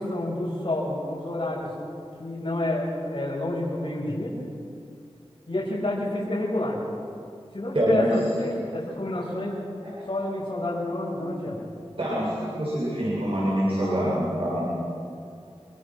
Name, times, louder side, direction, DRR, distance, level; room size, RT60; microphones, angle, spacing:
voice 1, 0.0-1.7 2.2-4.4 5.5-6.8 7.5-9.7 10.1-11.6, left 1 dB, 50° left, -5 dB, 6.5 m, -29 dB
voice 2, 7.7-8.1 9.8-9.9 12.0-14.7, equal, 60° right, -7 dB, 7.0 m, -25 dB
26.0 x 23.0 x 6.3 m, 2.4 s
wide cardioid pair, 50°, 11 cm